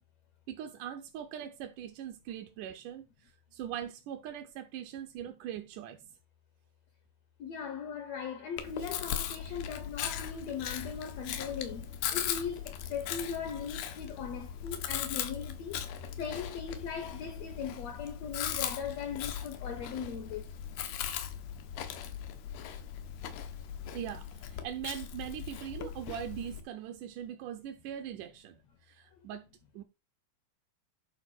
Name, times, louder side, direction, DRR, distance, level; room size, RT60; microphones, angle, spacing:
voice 1, 0.5-6.0 23.9-28.6 28.8-29.5 29.7-29.8, right 10 dB, 75° right, 2.0 m, -41 dB
voice 2, 7.4-15.8 16.2-20.5, left 6 dB, 75° left, 1.6 m, -39 dB
Chewing mastication, 8.6-26.6, left 9 dB, 90° left, 3.2 m, -39 dB
11.5 x 5.1 x 4.5 m
omnidirectional pair, 4.3 m